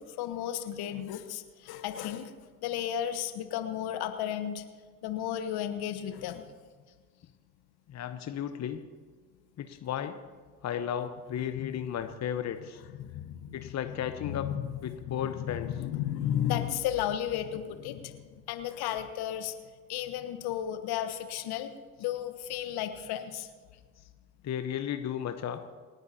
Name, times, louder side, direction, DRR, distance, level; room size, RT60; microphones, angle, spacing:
voice 1, 0.0-2.3 2.6-4.6 5.0-6.5 11.6-11.8 13.0-13.9 14.2-14.6 15.1-19.5 19.9-21.7 22.0-23.5, left 10 dB, 55° left, 9 dB, 1.2 m, -34 dB
voice 2, 7.9-8.8 9.6-10.2 10.6-12.8 13.5-14.5 14.8-15.7 24.0-24.1 24.4-25.6, left 9 dB, 40° left, 8 dB, 1.0 m, -34 dB
28.0 x 9.5 x 2.8 m, 1.5 s
hypercardioid pair, 60°, 44 cm